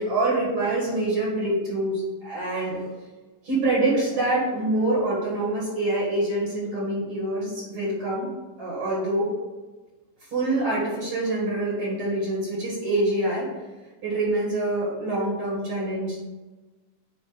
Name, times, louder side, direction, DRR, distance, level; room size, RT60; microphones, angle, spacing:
voice 1, 0.0-2.8 3.4-8.3 8.6-9.3 10.3-13.5 14.0-16.2, right 2 dB, 50° right, -5 dB, 2.6 m, -25 dB
8.8 x 3.1 x 6.4 m, 1.2 s
omnidirectional pair, 3.5 m